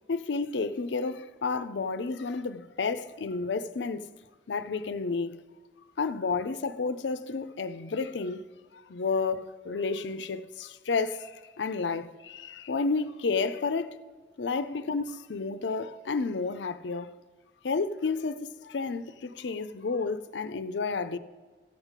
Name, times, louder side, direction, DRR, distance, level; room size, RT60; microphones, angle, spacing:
voice 1, 0.1-4.1 4.5-5.4 6.0-14.0 14.4-17.1 17.6-21.2, left 4 dB, 75° left, 0.5 m, -31 dB
13.5 x 8.2 x 5.0 m
head